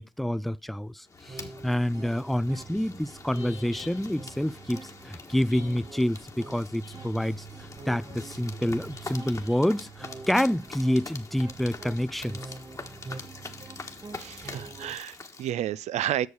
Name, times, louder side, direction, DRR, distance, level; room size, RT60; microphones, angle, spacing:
voice 1, 0.0-7.5 7.9-12.5, left 1 dB, ahead, 0.4 m, -28 dB
sound 1, 1.1-15.5, left 3 dB, 25° left, 1.5 m, -44 dB
sound 2, 1.3-15.0, right 4 dB, 30° right, 1.1 m, -45 dB
voice 2, 14.2-16.3, right 11 dB, 65° right, 0.5 m, -31 dB
8.1 x 6.4 x 4.7 m
supercardioid pair, 70°, 13 cm